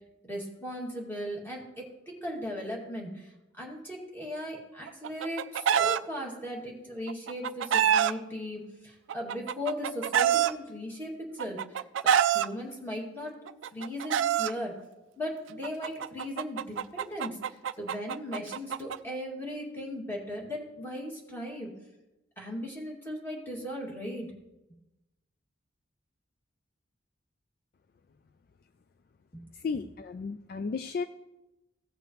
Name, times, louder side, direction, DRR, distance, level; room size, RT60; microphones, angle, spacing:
voice 1, 0.2-11.8 12.3-13.4 13.7-14.8 15.2-21.7 22.4-24.3 29.3-29.4, left 1 dB, 10° left, -3 dB, 2.2 m, -37 dB
Chicken rooster, 4.9-6.0 7.1-8.1 9.1-10.5 11.4-12.5 13.5-14.5 15.6-19.0, right 9 dB, 75° right, 0.3 m, -26 dB
voice 2, 29.6-31.0, left 5 dB, 50° left, 10 dB, 0.3 m, -33 dB
16.0 x 6.7 x 3.1 m, 0.97 s
head